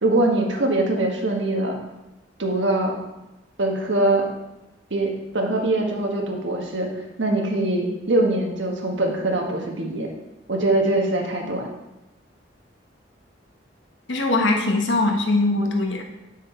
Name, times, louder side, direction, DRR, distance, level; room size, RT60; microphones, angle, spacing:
voice 1, 0.0-1.8 2.4-2.9 3.6-4.3 4.9-6.9 7.2-10.1 10.5-11.7, right 2 dB, 80° right, 1 dB, 1.4 m, -22 dB
voice 2, 14.1-16.0, left 2 dB, 75° left, 2 dB, 1.2 m, -21 dB
7.6 x 6.3 x 4.5 m, 0.99 s
head